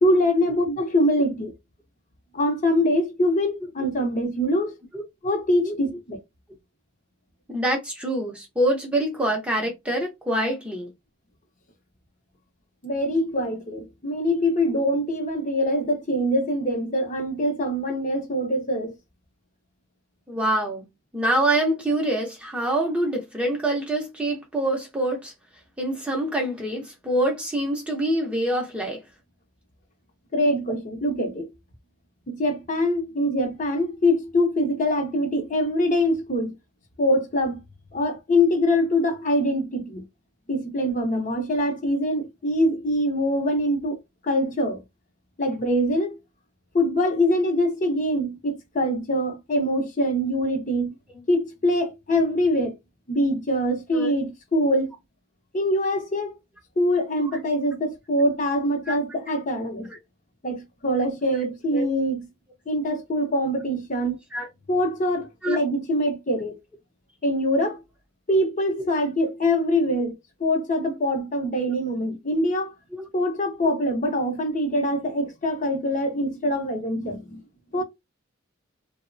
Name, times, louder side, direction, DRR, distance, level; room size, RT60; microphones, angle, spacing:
voice 1, 0.0-1.5 2.3-4.7 5.2-6.2 12.8-18.9 30.3-31.5 32.3-36.6 37.0-37.6 37.9-40.0 40.5-44.0 44.2-44.8 45.4-46.2 46.7-50.9 51.3-52.7 53.1-54.9 55.5-56.4 56.8-59.9 60.4-62.3 62.7-64.2 64.7-66.6 67.2-67.8 68.3-70.1 70.4-72.7 73.1-77.4 77.7-77.8, left 1 dB, 40° left, 0.6 m, -24 dB
voice 2, 7.5-10.9 20.3-20.9 21.1-25.3 25.8-29.0 53.9-54.1 58.9-59.0 59.9-60.0 61.7-61.8 64.3-64.5 65.4-65.6 72.9-73.1, right 1 dB, 5° right, 0.6 m, -25 dB
2.9 x 2.0 x 2.5 m
head